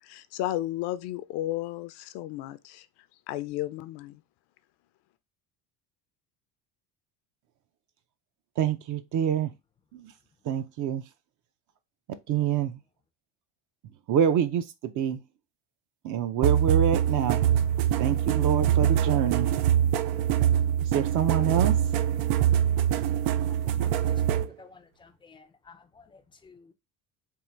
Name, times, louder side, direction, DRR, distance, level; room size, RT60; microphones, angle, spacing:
voice 1, 0.0-2.9 3.3-4.2, left 14 dB, 65° left, 0.5 m, -33 dB
voice 2, 8.6-9.5 9.9-10.1 10.5-11.0 12.3-12.8 14.1-15.2 16.0-17.4 18.0-19.5 20.9-21.8, right 9 dB, 45° right, 0.5 m, -26 dB
sound 1, 16.4-24.5, right 10 dB, 90° right, 0.6 m, -24 dB
voice 3, 23.5-26.7, left 4 dB, 10° left, 0.4 m, -52 dB
3.7 x 2.5 x 4.2 m
cardioid pair, 140°, 42 cm